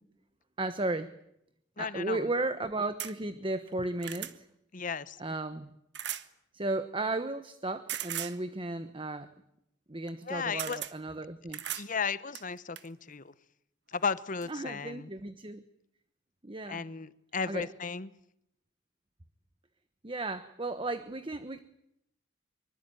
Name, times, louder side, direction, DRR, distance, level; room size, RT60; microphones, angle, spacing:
voice 1, 0.6-1.1 1.8-4.5 5.2-5.7 6.5-9.3 9.9-11.6 14.5-15.6 16.4-16.8 17.5-17.7 20.0-21.6, right 2 dB, 25° right, 11 dB, 1.1 m, -34 dB
voice 2, 1.8-2.3 4.7-5.2 10.3-10.8 11.7-13.3 13.9-15.1 16.7-18.1, left 5 dB, 45° left, 16 dB, 1.0 m, -35 dB
sound 1, 3.0-3.1 3.7-4.3 5.9-6.3 7.9-8.4 10.1-10.2 10.6-10.9 11.5-11.9 12.3-12.9 13.9-14.0 14.4-14.5, right 11 dB, 60° right, 1.6 m, -37 dB
25.0 x 24.0 x 9.2 m, 0.79 s
head